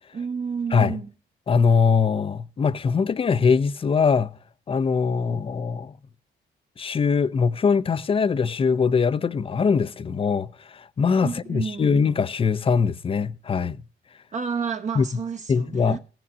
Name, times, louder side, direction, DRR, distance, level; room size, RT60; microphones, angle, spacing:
voice 1, 0.1-1.1 5.2-5.4 11.2-12.0 14.3-16.0, right 6 dB, 35° right, 0.8 m, -30 dB
voice 2, 1.5-4.3 4.7-5.9 6.8-13.8 15.0-15.1 15.5-16.0, left 5 dB, 30° left, 0.5 m, -22 dB
16.0 x 6.0 x 5.9 m
cardioid pair, 90°, 20 cm